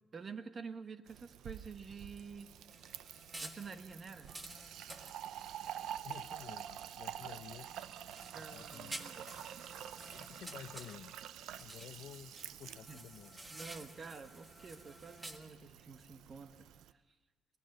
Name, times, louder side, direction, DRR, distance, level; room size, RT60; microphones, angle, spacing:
voice 1, 0.1-2.5 3.4-4.3 8.3-9.4 12.9-13.0 13.5-17.0, right 5 dB, 35° right, 9 dB, 1.2 m, -49 dB
Fill (with liquid), 1.1-16.9, right 10 dB, 85° right, 0.6 m, -48 dB
sound 1, 2.7-6.9 7.3-11.3 11.6-15.4, right 1 dB, 15° right, 1.3 m, -52 dB
voice 2, 6.0-7.7 8.4-9.2 10.1-11.1 11.6-13.4, left 10 dB, 70° left, 13 dB, 0.7 m, -52 dB
23.0 x 19.5 x 6.6 m, 1.4 s
cardioid pair, 145°, 0 cm